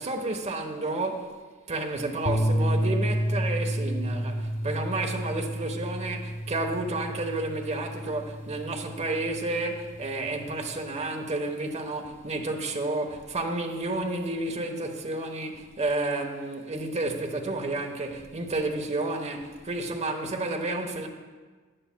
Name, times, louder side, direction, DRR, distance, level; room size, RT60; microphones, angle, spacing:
voice 1, 0.0-1.3 1.7-21.1, right 2 dB, 35° right, 1.0 m, -31 dB
sound 1, 2.2-10.6, equal, 25° left, 0.5 m, -30 dB
16.5 x 10.5 x 2.2 m
head